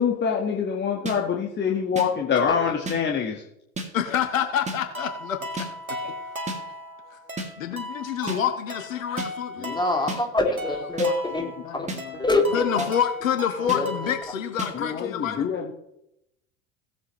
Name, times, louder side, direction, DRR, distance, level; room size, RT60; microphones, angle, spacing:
voice 1, 0.0-3.4 6.0-6.1 14.7-15.7, left 7 dB, 25° left, 0 dB, 1.7 m, -25 dB
sound 1, 1.1-1.2 2.0-2.1 2.9-3.0 3.8-3.9 4.7-4.8 5.6-5.7 6.5-6.6 7.4-7.5 8.3-8.4 9.2-9.3 10.1-10.2 11.0-11.1 11.9-12.0 12.8-12.9 13.7-13.8 14.6-14.7, right 2 dB, 15° right, 2.4 m, -31 dB
voice 2, 3.9-5.4 7.6-9.8 11.6-12.2 12.5-15.5, left 9 dB, 70° left, 7 dB, 1.4 m, -27 dB
sound 2, 4.9-14.3, equal, 90° right, 1.4 m, -37 dB
voice 3, 9.6-11.9 12.1-12.9 13.6-14.1, left 2 dB, 10° left, 2 dB, 2.8 m, -25 dB
17.5 x 8.0 x 3.2 m, 0.80 s
figure-of-eight pair, 75°, 41 cm